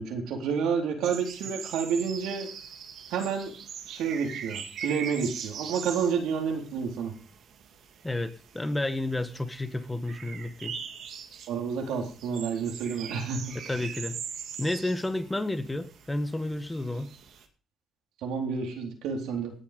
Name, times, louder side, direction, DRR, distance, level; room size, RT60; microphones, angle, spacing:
voice 1, 0.0-2.5 3.1-3.5 3.9-7.1 11.5-13.6 18.2-19.5, right 6 dB, 90° right, 4.1 m, -29 dB
sound 1, 1.0-17.5, right 7 dB, 70° right, 2.3 m, -42 dB
voice 2, 8.0-10.8 13.6-14.2 14.6-17.1, left 1 dB, 10° left, 1.6 m, -31 dB
18.5 x 7.2 x 5.2 m
cardioid pair, 90°, 0 cm